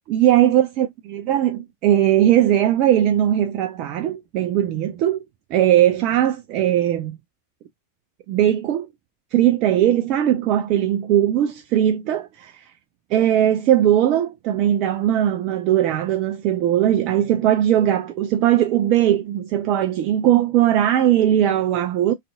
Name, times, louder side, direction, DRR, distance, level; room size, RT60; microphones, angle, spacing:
voice 1, 0.1-5.2 5.5-7.2 8.3-8.9 9.3-12.7 13.1-22.1, right 11 dB, 40° right, 0.3 m, -19 dB
2.5 x 2.4 x 2.3 m
figure-of-eight pair, 90°, 0 cm